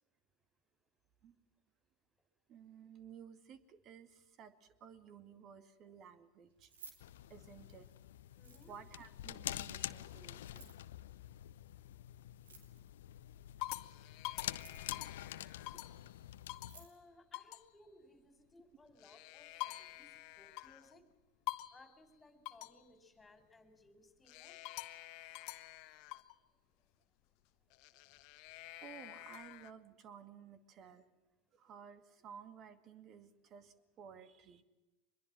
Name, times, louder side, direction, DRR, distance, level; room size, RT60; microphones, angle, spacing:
voice 1, 2.5-6.7 7.3-7.9 8.7-10.7 14.8-14.9 28.8-31.1 31.5-34.6, right 7 dB, 45° right, 12 dB, 2.3 m, -55 dB
Keys jangling, 6.5-7.9 8.3-9.0 10.4-10.9 12.3-13.0 14.4-15.0 16.2-16.3 16.5-17.0, right 4 dB, 80° right, 4.2 m, -58 dB
sound 1, 7.0-16.9, left 13 dB, 75° left, 0.7 m, -47 dB
voice 2, 8.3-8.7 16.7-21.0 21.7-24.6, left 2 dB, 15° left, 9 dB, 4.5 m, -62 dB
sound 2, 11.2-11.9 12.4-12.8 13.3-16.1 16.5-16.8 17.3-17.7 18.8-21.0 21.5-21.9 22.5-22.8 24.3-26.4 27.7-29.7, left 19 dB, 55° left, 1.2 m, -47 dB
24.5 x 22.0 x 7.6 m, 1.1 s
hypercardioid pair, 85°, 0 cm